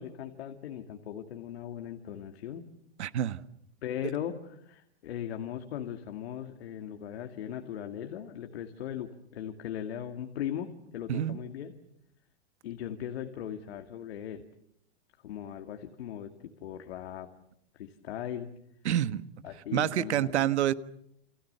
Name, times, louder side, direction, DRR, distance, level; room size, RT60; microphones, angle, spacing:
voice 1, 0.0-2.6 3.8-11.8 12.6-14.4 15.2-17.3 17.7-18.5 19.4-20.5, left 10 dB, 65° left, 5 dB, 2.4 m, -39 dB
voice 2, 3.0-3.4 11.1-11.4 18.8-19.2 19.7-20.7, right 11 dB, 90° right, 13 dB, 1.5 m, -27 dB
30.0 x 26.5 x 6.9 m, 0.73 s
supercardioid pair, 175°, 33 cm